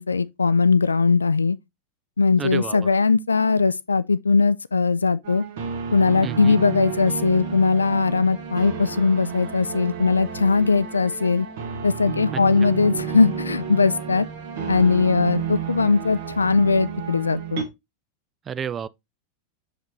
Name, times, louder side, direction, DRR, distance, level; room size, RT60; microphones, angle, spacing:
voice 1, 0.0-1.6 2.2-5.4 5.9-11.5 11.8-14.3 14.7-17.6, left 4 dB, 75° left, 0.3 m, -20 dB
voice 2, 2.4-2.9 6.2-6.6 12.3-12.4 18.5-18.9, right 7 dB, 25° right, 0.4 m, -30 dB
sound 1, 5.2-17.6, right 6 dB, 55° right, 1.5 m, -31 dB
6.3 x 5.0 x 3.1 m
figure-of-eight pair, 90°, 0 cm